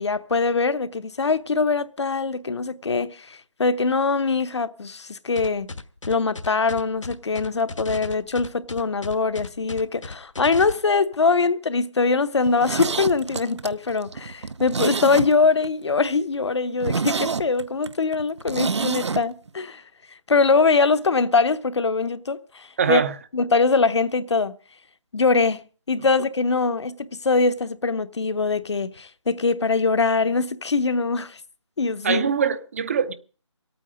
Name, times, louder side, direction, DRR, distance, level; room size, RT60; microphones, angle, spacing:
voice 1, 0.0-5.7 6.1-19.8 20.1-23.0 23.3-24.6 25.1-31.4 31.8-32.3, left 4 dB, 65° left, 1.0 m, -22 dB
sound 1, 5.4-10.7, left 3 dB, 80° left, 1.4 m, -35 dB
Zipper (clothing), 12.4-15.7 16.0-16.1 16.4-16.5 16.8-19.2 19.5-19.6, right 5 dB, 65° right, 0.7 m, -27 dB
voice 2, 22.8-23.2 32.0-33.1, right 7 dB, 30° right, 0.7 m, -22 dB
25.0 x 9.0 x 5.0 m
figure-of-eight pair, 160°, 16 cm